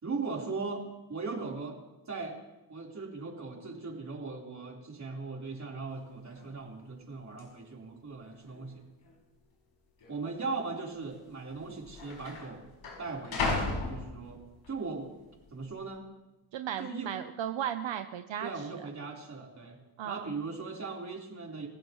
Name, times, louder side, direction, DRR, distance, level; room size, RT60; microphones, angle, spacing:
voice 1, 0.0-1.8 2.1-2.4 2.7-8.8 10.1-12.6 13.0-13.6 13.9-14.4 14.7-15.1 15.5-16.0 16.8-17.1 18.4-19.8 20.0-21.7, right 4 dB, 35° right, -2 dB, 4.0 m, -38 dB
sound 1, 5.9-6.0 6.3-6.7 7.4-7.5 8.2-8.8 9.0-9.1 10.0-10.2 11.2-11.3 11.5-14.7 15.2-15.6, left 3 dB, 80° left, 6.6 m, -36 dB
voice 2, 16.5-18.8 20.0-20.3, right 10 dB, 70° right, 8 dB, 0.9 m, -36 dB
29.0 x 15.0 x 3.1 m, 1.0 s
cardioid pair, 105°, 47 cm